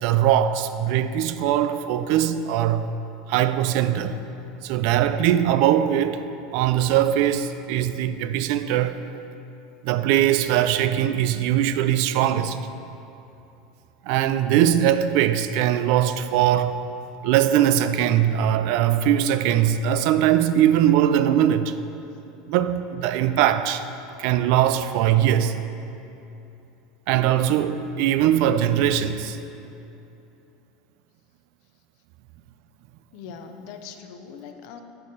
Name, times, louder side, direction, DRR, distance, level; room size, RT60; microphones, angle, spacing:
voice 1, 0.0-2.9 3.3-4.2 4.6-6.2 6.5-9.1 9.8-12.6 14.1-16.8 17.2-21.8 22.5-23.8 24.2-25.6 27.1-29.4, right 11 dB, 55° right, 0.3 m, -21 dB
voice 2, 33.1-34.8, left 6 dB, 55° left, 0.6 m, -41 dB
6.7 x 5.4 x 6.3 m
supercardioid pair, 160°, 0 cm